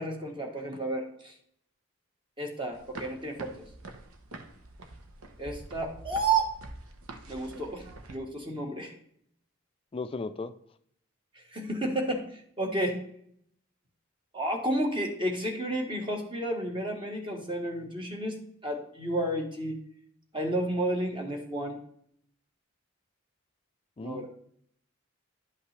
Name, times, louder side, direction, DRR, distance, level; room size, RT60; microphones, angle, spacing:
voice 1, 0.0-1.3 2.4-3.7 5.4-6.5 7.3-8.9 11.3-13.0 14.3-18.4 18.6-19.8 20.3-21.8 24.0-24.3, right 1 dB, 25° right, 2 dB, 1.3 m, -31 dB
sound 1, 2.7-8.2, right 2 dB, 90° right, 1.0 m, -46 dB
voice 2, 9.9-10.5 24.0-24.3, left 3 dB, 25° left, 12 dB, 0.4 m, -36 dB
11.0 x 5.7 x 3.3 m, 0.68 s
head